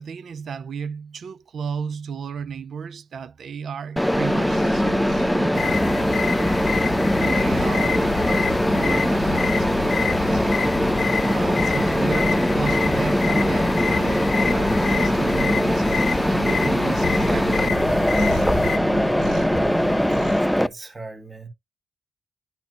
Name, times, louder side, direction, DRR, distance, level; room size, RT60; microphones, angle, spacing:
voice 1, 0.0-6.6 7.2-8.4 8.8-10.7 11.2-15.9 16.3-18.4 18.8-19.3, right 6 dB, 60° right, 0.6 m, -34 dB
Mechanisms, 4.0-20.7, equal, ahead, 0.4 m, -21 dB
Cat, 4.2-20.4, right 3 dB, 80° right, 5.6 m, -38 dB
sound 1, 5.5-18.8, left 7 dB, 60° left, 0.5 m, -28 dB
voice 2, 19.5-20.3 20.6-21.5, right 2 dB, 25° right, 1.8 m, -39 dB
10.5 x 4.3 x 2.6 m
cardioid pair, 115°, 0 cm